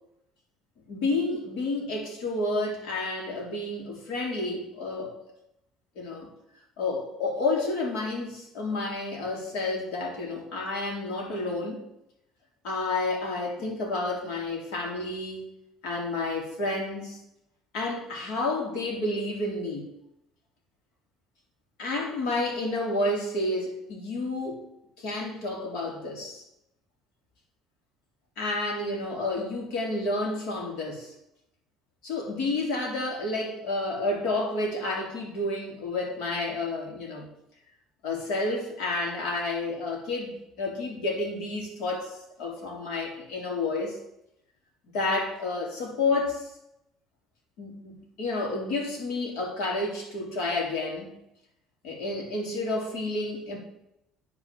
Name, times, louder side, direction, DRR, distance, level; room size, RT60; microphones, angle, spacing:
voice 1, 0.9-5.1 6.0-6.3 6.8-11.8 12.6-15.5 15.8-17.2 17.7-19.9 21.8-24.6 25.0-26.4 28.4-31.1 32.0-37.3 38.0-44.0 44.9-46.5 47.6-51.2 51.8-53.6, left 2 dB, 80° left, 0 dB, 3.8 m, -30 dB
9.2 x 5.9 x 7.5 m, 0.82 s
cardioid pair, 115°, 0 cm